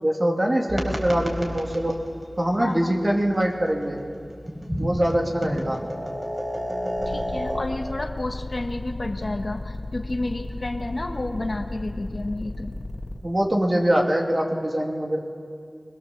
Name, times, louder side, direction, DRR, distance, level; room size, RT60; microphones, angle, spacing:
voice 1, 0.0-2.0 2.4-4.0 4.8-5.8 13.2-15.2, right 1 dB, 40° right, 0 dB, 2.8 m, -23 dB
sound 1, 0.7-7.6, equal, 20° right, 4.3 m, -32 dB
voice 2, 2.6-2.9 7.0-12.8, left 2 dB, 50° left, 4 dB, 1.5 m, -31 dB
sound 2, 7.0-13.2, left 2 dB, 80° left, 1.9 m, -35 dB
23.0 x 21.0 x 7.3 m, 2.3 s
wide cardioid pair, 60°, 0 cm